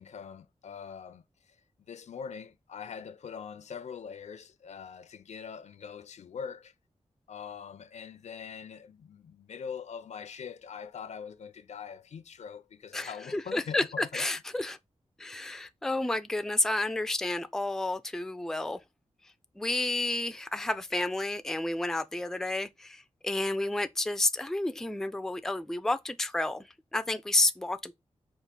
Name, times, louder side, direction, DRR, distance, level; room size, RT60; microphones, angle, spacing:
voice 1, 0.0-1.6 1.9-6.7 7.3-14.3, left 6 dB, 80° left, 0.5 m, -43 dB
voice 2, 12.9-14.8 15.2-18.8 19.6-26.7 26.9-27.9, left 2 dB, 5° left, 0.3 m, -30 dB
4.6 x 2.4 x 3.7 m
wide cardioid pair, 130°, 12 cm